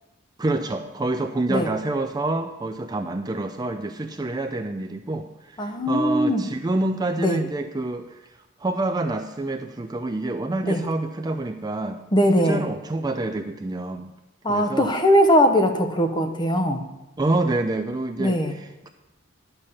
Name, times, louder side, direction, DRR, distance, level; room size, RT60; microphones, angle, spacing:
voice 1, 0.4-8.2 8.6-12.0 12.4-14.1 14.5-14.9 17.2-18.9, right 2 dB, 20° right, 6 dB, 0.4 m, -27 dB
voice 2, 5.6-6.4 7.2-7.4 10.6-10.8 12.1-12.7 14.4-16.9 18.2-18.5, equal, 20° left, 5 dB, 0.9 m, -20 dB
10.5 x 6.7 x 5.5 m, 0.98 s
head